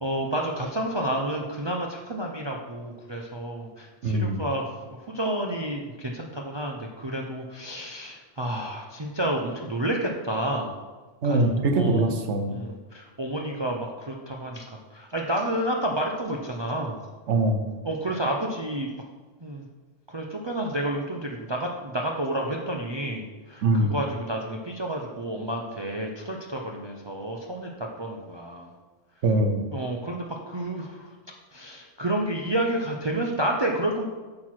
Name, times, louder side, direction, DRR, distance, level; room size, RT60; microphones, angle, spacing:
voice 1, 0.0-10.7 11.2-11.4 11.7-12.0 12.5-17.0 17.8-18.9 19.4-19.7 20.1-28.7 29.7-31.1 31.5-34.0, right 1 dB, 30° right, 1 dB, 0.6 m, -30 dB
voice 2, 4.0-4.4 11.2-12.6 17.3-17.6 23.6-23.9 29.2-29.6, right 2 dB, 85° right, 5 dB, 1.1 m, -22 dB
8.6 x 4.6 x 6.0 m, 1.3 s
omnidirectional pair, 1.2 m